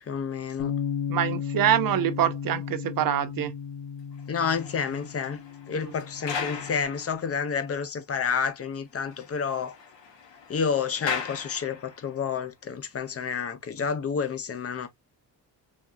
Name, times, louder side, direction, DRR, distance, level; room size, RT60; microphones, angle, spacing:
voice 1, 0.1-0.7 4.3-5.4 5.7-9.7 10.5-14.9, left 6 dB, 35° left, 0.6 m, -29 dB
Bass guitar, 0.6-6.8, left 7 dB, 90° left, 0.7 m, -34 dB
voice 2, 1.1-3.5 5.8-5.9, right 11 dB, 50° right, 0.5 m, -25 dB
sound 1, 4.1-7.8 8.1-8.2 8.6-8.7 9.0-12.2 12.9-13.1, left 5 dB, 70° left, 1.1 m, -39 dB
3.5 x 2.7 x 2.3 m
cardioid pair, 125°, 44 cm